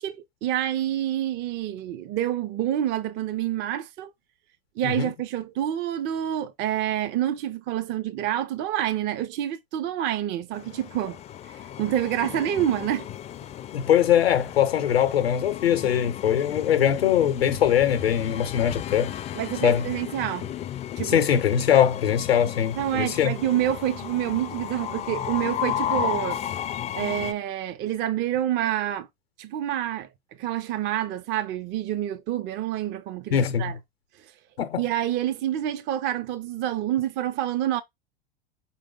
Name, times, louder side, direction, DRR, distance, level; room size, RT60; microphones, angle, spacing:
voice 1, 0.0-4.1 4.8-11.2 11.5-13.1 19.3-20.5 21.0-21.2 22.8-26.4 27.0-29.1 29.4-30.1 30.4-33.8 34.2-34.3 34.8-37.8, right 12 dB, 35° right, 0.5 m, -27 dB
Train, 10.5-27.3, left 11 dB, 25° left, 0.3 m, -34 dB
voice 2, 13.7-19.1 19.6-19.8 21.0-23.3 33.3-33.7 34.6-34.8, left 9 dB, 90° left, 0.7 m, -22 dB
4.8 x 2.1 x 3.7 m
hypercardioid pair, 95°, 30 cm